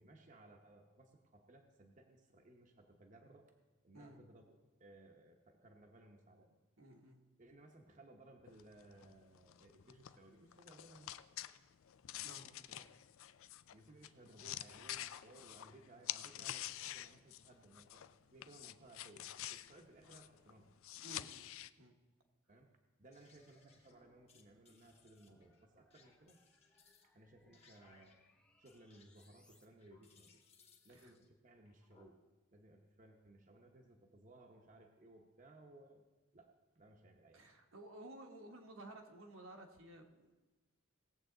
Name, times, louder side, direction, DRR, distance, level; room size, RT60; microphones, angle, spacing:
voice 1, 0.0-3.5 3.8-4.4 4.8-6.6 7.4-11.3 12.2-12.9 13.7-18.0 18.3-20.7 22.5-22.7 23.0-26.4 27.1-28.2 28.6-30.4 30.8-32.2 32.5-36.0 36.3-37.5, right 1 dB, 35° right, 2 dB, 0.9 m, -61 dB
voice 2, 6.8-7.2 12.2-12.5 21.0-21.5 21.8-22.0 30.9-31.1 37.3-40.4, right 1 dB, 75° right, 2 dB, 1.4 m, -55 dB
sound 1, 8.5-18.1 18.4-21.7, left 13 dB, 70° left, 0.4 m, -48 dB
sound 2, 23.1-32.1, left 4 dB, 30° left, 1.2 m, -69 dB
sound 3, 23.3-29.7, left 1 dB, 5° left, 0.6 m, -74 dB
18.0 x 7.7 x 3.9 m, 1.2 s
head